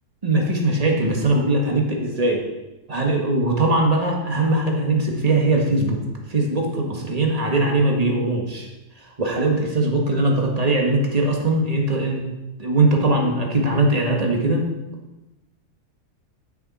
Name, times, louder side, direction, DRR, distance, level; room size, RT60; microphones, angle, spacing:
voice 1, 0.2-2.4 2.9-6.0 6.3-8.7 9.2-12.2 12.6-14.7, right 2 dB, 25° right, 0 dB, 1.6 m, -20 dB
9.4 x 9.3 x 4.2 m, 1.0 s
omnidirectional pair, 1.7 m